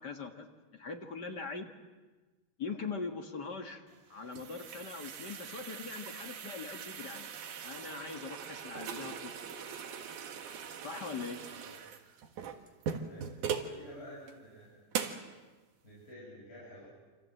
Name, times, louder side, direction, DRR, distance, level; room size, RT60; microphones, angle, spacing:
voice 1, 0.0-1.7 2.6-3.8 4.1-7.3 7.6-9.4 10.8-11.4, left 4 dB, 40° left, 4 dB, 1.9 m, -41 dB
sound 1, 3.9-13.8 14.3-14.4 14.9-15.3, right 7 dB, 70° right, 3.1 m, -41 dB
voice 2, 11.5-11.8 13.0-13.3 13.6-14.9 15.8-16.9, left 1 dB, 15° left, -5 dB, 7.4 m, -50 dB
27.5 x 27.5 x 7.8 m, 1.3 s
omnidirectional pair, 3.7 m